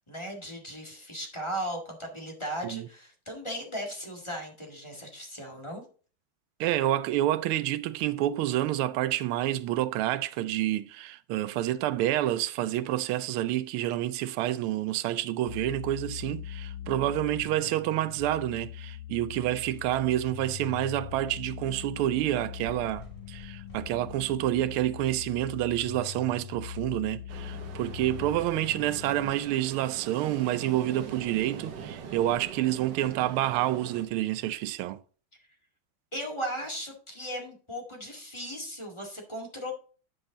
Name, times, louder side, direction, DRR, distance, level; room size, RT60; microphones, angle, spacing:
voice 1, 0.0-5.8 36.1-39.7, equal, 15° left, 1.7 m, -37 dB
voice 2, 6.6-35.0, right 14 dB, 90° right, 1.5 m, -28 dB
sound 1, 15.5-29.3, left 11 dB, 80° left, 1.5 m, -41 dB
sound 2, 19.3-21.2 21.9-22.0 22.2-22.3 22.5-25.6, left 1 dB, 15° right, 3.3 m, -54 dB
Ocean, 27.3-34.1, right 7 dB, 60° right, 1.6 m, -43 dB
10.0 x 5.4 x 3.8 m
omnidirectional pair, 2.3 m